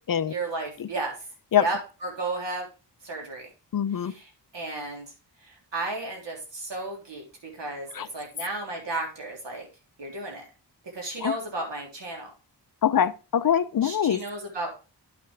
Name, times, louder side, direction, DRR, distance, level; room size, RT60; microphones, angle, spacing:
voice 1, 0.3-1.1 1.6-2.7 3.0-3.5 4.0-4.2 4.5-5.1 5.4-9.7 10.0-10.4 10.9-12.3 13.8-14.7, right 2 dB, 75° right, 3.5 m, -33 dB
voice 2, 3.7-4.1 7.9-8.1 11.2-11.3 12.8-14.2, left 9 dB, 50° left, 0.6 m, -23 dB
10.5 x 6.4 x 3.3 m
wide cardioid pair, 80°, 43 cm